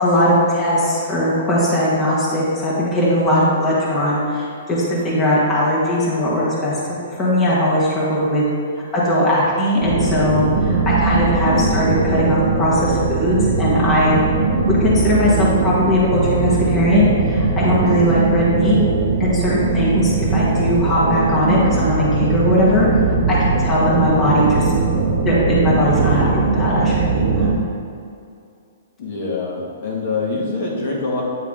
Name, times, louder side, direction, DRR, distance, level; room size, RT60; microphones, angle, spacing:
voice 1, 0.0-8.4 8.9-14.2 14.7-18.8 19.2-22.9 23.3-24.7 25.2-27.5, left 1 dB, 15° left, -8 dB, 1.3 m, -19 dB
sound 1, 9.8-27.6, right 4 dB, 60° right, 0.7 m, -19 dB
voice 2, 29.0-31.2, left 3 dB, 55° left, -3 dB, 1.5 m, -24 dB
9.1 x 3.6 x 3.6 m, 2.4 s
hypercardioid pair, 160°, 0 cm